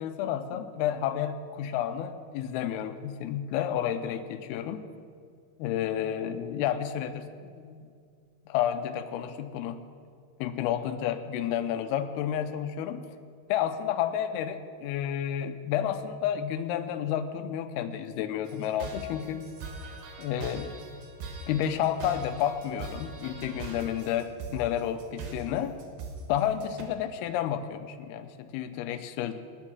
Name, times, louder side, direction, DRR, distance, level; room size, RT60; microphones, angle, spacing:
voice 1, 0.0-4.8 5.6-7.8 8.5-9.8 10.4-13.0 13.5-19.4 20.2-20.7 21.5-25.8 26.3-29.3, left 10 dB, 85° left, 9 dB, 2.7 m, -31 dB
sound 1, 18.5-26.8, right 3 dB, 65° right, 2.8 m, -41 dB
19.0 x 6.5 x 6.2 m, 2.2 s
omnidirectional pair, 4.5 m